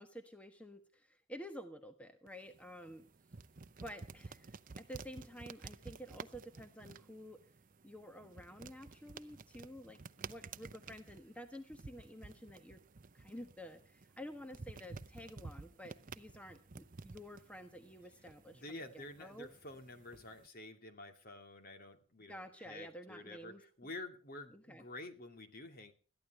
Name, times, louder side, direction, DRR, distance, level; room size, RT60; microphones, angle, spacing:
voice 1, 0.0-3.0 3.8-7.4 7.8-12.8 13.1-19.5 22.3-23.9 24.5-24.8, equal, 5° left, 6 dB, 1.3 m, -51 dB
sound 1, 2.3-20.5, right 4 dB, 40° right, 0.7 m, -53 dB
voice 2, 18.5-25.9, left 2 dB, 45° left, 6 dB, 2.5 m, -50 dB
21.0 x 14.5 x 3.3 m, 0.40 s
head